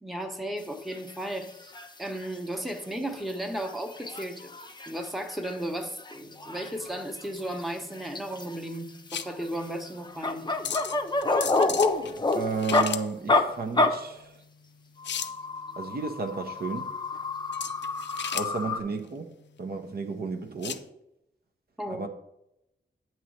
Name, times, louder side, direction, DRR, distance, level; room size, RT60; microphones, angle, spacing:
voice 1, 0.0-4.5 4.9-10.4 21.8-22.0, right 1 dB, ahead, 0.9 m, -35 dB
sound 1, 0.9-1.1 1.4-1.5 1.7-1.9 2.2-2.3 2.7-2.8 3.1-5.1 5.4-5.6 5.8-7.6 7.9-8.7 9.2-12.9 13.3-13.4 13.8-13.9 15.0-18.8, left 3 dB, 25° left, 0.6 m, -28 dB
sound 2, 6.2-20.9, left 8 dB, 75° left, 0.4 m, -39 dB
voice 2, 12.3-14.3 15.8-16.9 18.3-19.3 19.6-20.8 21.9-22.1, right 4 dB, 55° right, 0.7 m, -33 dB
8.1 x 3.1 x 6.3 m
cardioid pair, 70°, 19 cm